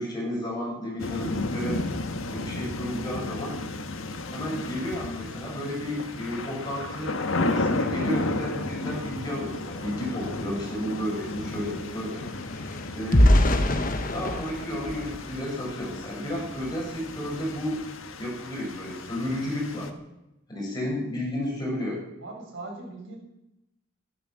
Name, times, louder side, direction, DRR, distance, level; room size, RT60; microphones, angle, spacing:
voice 1, 0.0-1.8 2.3-3.6 4.3-12.2 12.9-13.3 14.1-17.8 18.2-19.9 20.5-22.0, left 1 dB, 20° left, -4 dB, 7.9 m, -32 dB
sound 1, 1.0-19.9, left 2 dB, 80° left, 1.5 m, -33 dB
sound 2, 10.2-10.3 10.5-16.0 16.5-16.7 17.1-17.3, left 1 dB, 40° left, 1.4 m, -25 dB
voice 2, 22.2-23.2, right 2 dB, 65° right, -1 dB, 7.1 m, -39 dB
13.5 x 13.0 x 7.7 m, 0.88 s
head